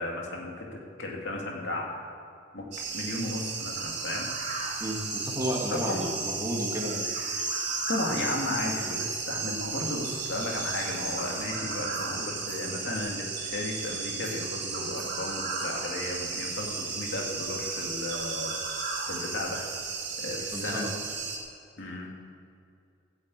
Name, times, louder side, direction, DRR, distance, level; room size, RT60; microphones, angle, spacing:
voice 1, 0.0-2.0 2.5-2.6 2.9-4.3 5.7-6.1 7.9-18.5 19.1-19.6 20.2-20.8 21.8-22.1, left 2 dB, 65° left, -1 dB, 2.4 m, -34 dB
sound 1, 2.7-21.4, right 4 dB, 60° right, 3.5 m, -34 dB
voice 2, 5.2-7.1 20.5-20.9, equal, 15° right, -2 dB, 2.3 m, -32 dB
15.0 x 8.5 x 8.4 m, 2.5 s
head